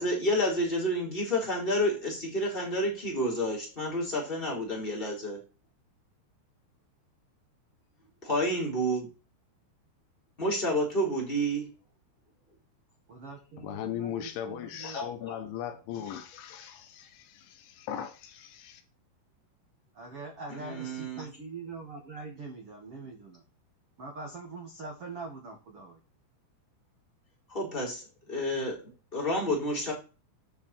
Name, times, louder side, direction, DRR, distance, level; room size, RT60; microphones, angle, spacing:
voice 1, 0.0-5.4 8.2-9.0 10.4-11.7 14.8-15.4 20.5-21.2 27.5-29.9, equal, 10° left, -3 dB, 3.6 m, -30 dB
voice 2, 13.1-15.2 19.9-23.4 24.0-26.0, right 3 dB, 70° right, 2 dB, 1.3 m, -43 dB
voice 3, 13.6-18.8, left 9 dB, 75° left, 8 dB, 3.3 m, -38 dB
12.0 x 6.2 x 4.4 m, 0.32 s
omnidirectional pair, 5.6 m